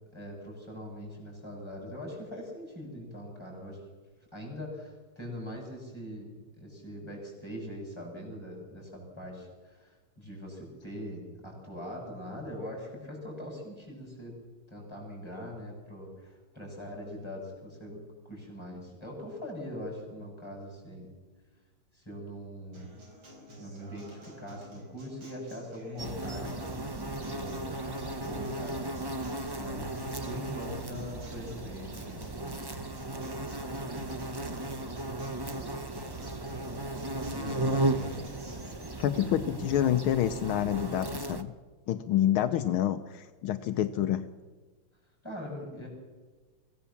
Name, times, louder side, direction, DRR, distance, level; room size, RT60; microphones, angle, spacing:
voice 1, 0.1-3.8 4.3-14.4 14.7-21.1 21.9-23.0 23.6-26.8 27.3-27.7 28.2-32.2 37.3-38.2 39.1-39.7 45.2-45.9, equal, 10° left, 0 dB, 7.5 m, -42 dB
Acoustic guitar, 22.7-38.7, equal, 80° right, 5.9 m, -50 dB
sound 1, 26.0-41.4, right 1 dB, 25° right, 0.5 m, -35 dB
voice 2, 39.0-41.5 41.9-44.2, left 11 dB, 80° left, 9 dB, 1.6 m, -28 dB
24.5 x 16.0 x 7.2 m, 1.4 s
omnidirectional pair, 2.3 m